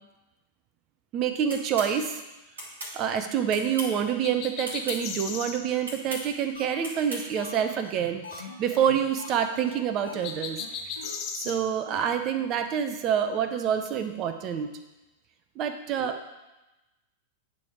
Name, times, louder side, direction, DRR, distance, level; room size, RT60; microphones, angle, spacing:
voice 1, 1.1-2.2 2.9-10.6 11.3-14.7 15.6-16.3, right 8 dB, 35° right, 8 dB, 0.6 m, -27 dB
String-pull-lightswitch-severaltakes, 1.5-1.9 2.6-2.9 3.5-4.0 4.6-5.0 5.8-6.2 6.8-7.2, right 1 dB, 65° right, 2.5 m, -36 dB
sound 1, 4.2-5.6 10.2-11.6, left 6 dB, 40° left, 0.7 m, -35 dB
sound 2, 6.6-6.7 7.0-7.1 7.4-9.4 9.7-9.8 10.1-10.3 10.6-10.7 11.0-11.2 11.4-11.5 11.9-12.0 12.4-12.5 12.7-12.8, left 4 dB, 75° left, 0.9 m, -42 dB
9.4 x 3.4 x 4.7 m, 1.0 s
figure-of-eight pair, 95°, 0 cm